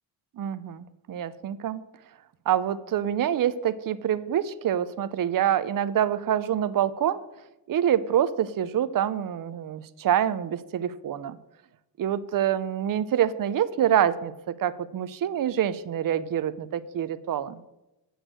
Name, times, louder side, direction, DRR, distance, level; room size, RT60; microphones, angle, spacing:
voice 1, 0.4-1.8 2.5-7.2 7.7-11.4 12.0-17.6, right 10 dB, 45° right, 15 dB, 0.6 m, -26 dB
8.0 x 6.2 x 7.9 m, 0.98 s
cardioid pair, 120°, 47 cm